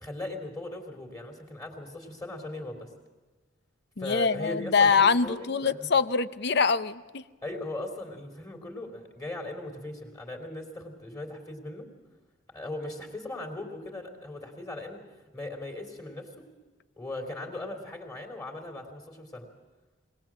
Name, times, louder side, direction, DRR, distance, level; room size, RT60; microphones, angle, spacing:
voice 1, 0.0-2.9 4.0-5.9 7.4-11.9 12.5-15.0 15.3-16.5 17.0-19.5, left 2 dB, 20° left, 1 dB, 3.3 m, -38 dB
voice 2, 4.0-7.2, left 5 dB, 60° left, 14 dB, 0.7 m, -24 dB
22.0 x 19.0 x 7.6 m, 1.3 s
head